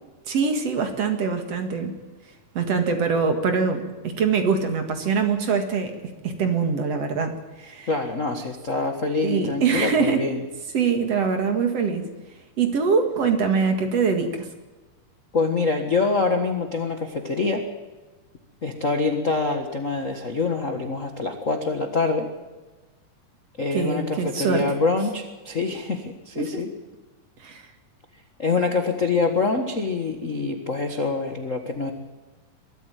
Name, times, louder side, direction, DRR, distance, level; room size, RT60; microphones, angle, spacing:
voice 1, 0.3-1.9 2.5-6.0 6.2-7.9 9.2-10.3 10.7-12.0 12.6-14.5 23.7-24.6 26.4-26.6 27.4-27.6, right 5 dB, 55° right, 6 dB, 2.7 m, -23 dB
voice 2, 7.9-10.4 15.3-17.6 18.6-22.3 23.6-26.7 28.4-31.9, left 3 dB, 40° left, 5 dB, 1.1 m, -25 dB
22.5 x 13.5 x 9.2 m, 1.2 s
omnidirectional pair, 3.8 m